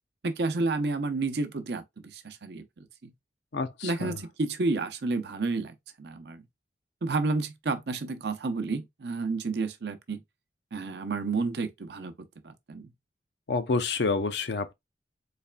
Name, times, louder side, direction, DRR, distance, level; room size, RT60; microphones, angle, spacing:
voice 1, 0.2-1.8 2.1-3.1 3.8-6.4 7.0-10.2 10.7-12.1 12.4-12.9, right 3 dB, 65° right, 0.6 m, -30 dB
voice 2, 3.5-4.2 13.5-14.7, left 4 dB, 70° left, 0.5 m, -28 dB
4.0 x 3.2 x 2.2 m
head